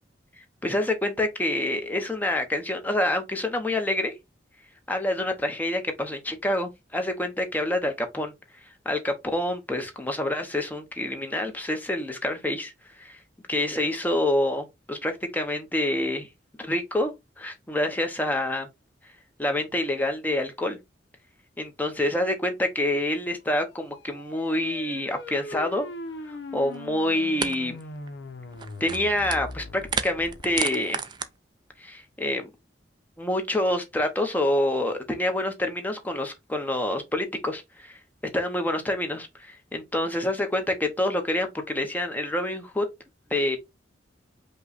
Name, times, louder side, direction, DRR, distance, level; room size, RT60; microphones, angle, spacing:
voice 1, 0.6-4.1 4.9-8.3 8.8-12.7 13.0-13.2 13.5-16.3 16.6-18.7 19.4-20.8 21.6-25.9 26.3-27.8 28.8-31.0 31.8-32.5 33.2-38.0 38.3-42.9 43.3-43.6, left 1 dB, 10° left, 0.8 m, -27 dB
sound 1, 23.7-30.6, left 2 dB, 75° left, 0.8 m, -41 dB
sound 2, 26.7-26.8 27.4-27.6 27.8-28.1 28.5-29.5 29.8-31.3, right 5 dB, 25° right, 0.4 m, -31 dB
5.4 x 2.2 x 4.0 m
head